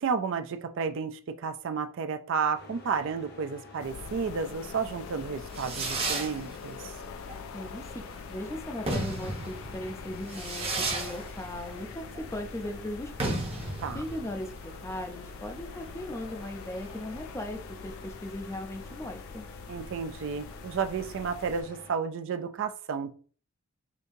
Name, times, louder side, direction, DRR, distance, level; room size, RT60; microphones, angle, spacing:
voice 1, 0.0-6.9 13.8-14.0 19.7-23.1, right 5 dB, 60° right, 8 dB, 0.4 m, -32 dB
sound 1, 2.5-21.9, left 2 dB, 50° left, 1.0 m, -49 dB
sound 2, 3.8-21.6, left 6 dB, 70° left, 0.3 m, -44 dB
Fireworks, 5.2-17.4, right 2 dB, 30° right, 0.7 m, -36 dB
voice 2, 7.5-13.5 13.9-19.5, left 1 dB, 15° left, 5 dB, 0.5 m, -38 dB
5.1 x 2.7 x 2.6 m, 0.42 s
head